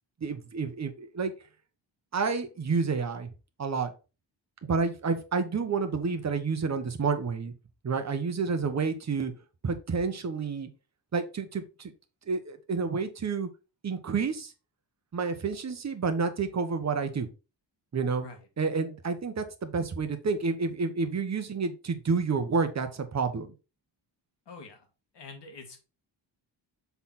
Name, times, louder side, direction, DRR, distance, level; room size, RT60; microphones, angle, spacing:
voice 1, 0.2-1.3 2.1-3.3 3.6-3.9 4.7-7.5 7.8-9.3 9.6-10.7 11.1-11.9 12.3-13.5 13.8-14.5 15.1-17.3 17.9-18.3 18.6-23.5, right 4 dB, 35° right, 7 dB, 1.0 m, -29 dB
voice 2, 24.5-24.9 25.1-25.8, left 4 dB, 65° left, 5 dB, 1.9 m, -45 dB
7.0 x 4.0 x 4.2 m, 0.31 s
wide cardioid pair, 150°, 45 cm